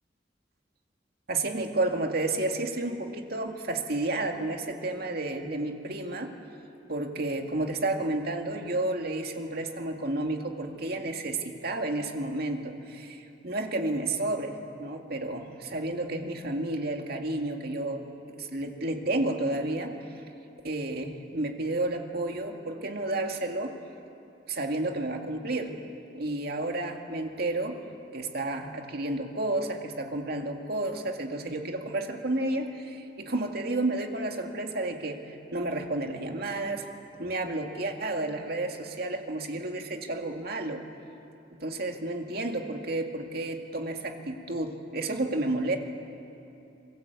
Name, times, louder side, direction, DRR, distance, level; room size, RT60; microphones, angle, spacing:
voice 1, 1.3-6.3 6.9-19.9 20.6-23.8 24.5-25.7 26.1-27.8 28.1-36.9 37.2-40.8 41.6-45.8, right 2 dB, 60° right, 3 dB, 2.3 m, -31 dB
27.0 x 22.0 x 8.3 m, 2.8 s
head